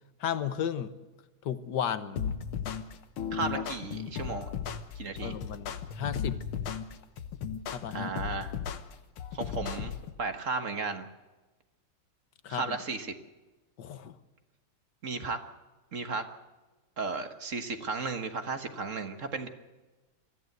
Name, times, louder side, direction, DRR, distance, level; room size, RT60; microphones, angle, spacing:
voice 1, 0.2-0.9 1.4-2.2 5.2-6.4 7.7-8.1 12.4-12.8 13.8-14.2, left 9 dB, 60° left, 12 dB, 1.6 m, -34 dB
sound 1, 2.2-10.1, left 7 dB, 85° left, 2.0 m, -36 dB
voice 2, 3.3-4.5 4.9-5.4 7.9-8.5 9.3-9.9 10.2-11.1 12.5-13.1 15.0-15.4 15.9-16.2 17.0-19.5, right 4 dB, 40° right, 8 dB, 1.6 m, -34 dB
23.0 x 14.5 x 8.0 m, 1.2 s
omnidirectional pair, 2.3 m